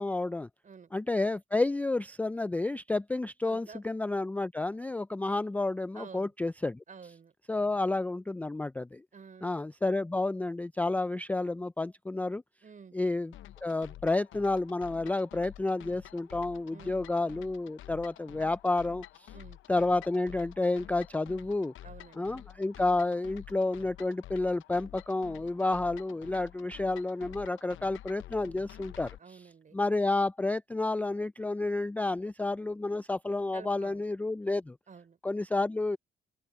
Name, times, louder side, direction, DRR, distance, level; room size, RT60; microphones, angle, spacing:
voice 1, 0.0-0.5 0.9-6.8 7.5-9.0 9.4-12.4 12.9-13.3 13.6-19.3 19.7-21.7 22.2-29.1 29.7-34.8 35.2-36.0, left 2 dB, 10° left, 0.3 m, -30 dB
voice 2, 0.6-1.0 3.4-3.8 5.9-6.3 6.9-7.3 9.1-9.5 12.6-12.9 16.7-17.1 19.3-19.6 21.8-22.3 29.2-29.8 33.5-34.0 34.9-35.2, right 5 dB, 40° right, 4.5 m, -50 dB
sound 1, 13.3-29.2, left 13 dB, 80° left, 0.8 m, -49 dB
open air
cardioid pair, 90°, 20 cm